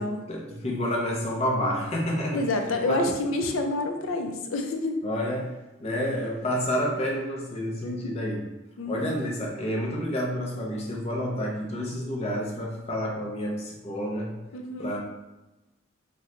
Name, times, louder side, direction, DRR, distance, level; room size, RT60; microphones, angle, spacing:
voice 1, 0.0-2.5 2.8-3.1 5.0-8.5 8.8-14.4 14.8-15.0, equal, 30° left, -1 dB, 0.6 m, -29 dB
voice 2, 2.3-5.0 7.8-8.1 8.8-9.0 14.5-15.0, left 2 dB, 75° left, 4 dB, 0.5 m, -28 dB
3.0 x 2.2 x 3.7 m, 1.0 s
head